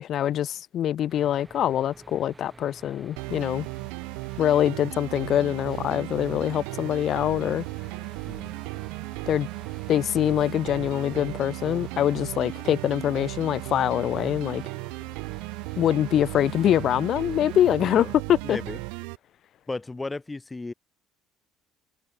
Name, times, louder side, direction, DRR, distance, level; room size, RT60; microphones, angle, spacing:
voice 1, 0.0-3.7 4.4-7.6 9.3-9.5 9.9-14.6 15.8-18.6, left 11 dB, 55° left, 0.7 m, -24 dB
sound 1, 1.1-17.8, right 3 dB, 15° right, 3.2 m, -49 dB
sound 2, 3.2-19.2, right 40 dB or more, 85° right, 0.4 m, -36 dB
voice 2, 18.4-18.8 19.7-20.7, left 3 dB, 15° left, 0.7 m, -34 dB
open air
supercardioid pair, 90°, 0 cm